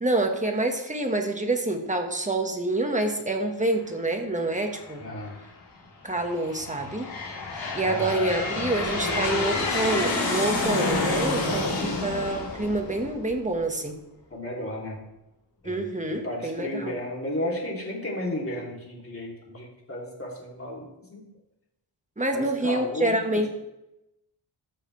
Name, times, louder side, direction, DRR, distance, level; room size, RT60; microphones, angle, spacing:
voice 1, 0.0-5.1 6.0-7.1 7.7-11.7 12.0-14.0 15.6-16.9 22.2-23.5, right 2 dB, 15° right, 4 dB, 1.3 m, -27 dB
Aircraft, 4.8-5.3 6.0-13.6, left 3 dB, 75° left, 3.5 m, -29 dB
voice 2, 5.0-5.4 7.8-8.1 11.8-12.0 14.3-15.0 15.6-21.2 22.3-23.5, left 1 dB, 30° left, -2 dB, 2.8 m, -34 dB
14.0 x 6.6 x 3.2 m, 0.90 s
wide cardioid pair, 90°, 46 cm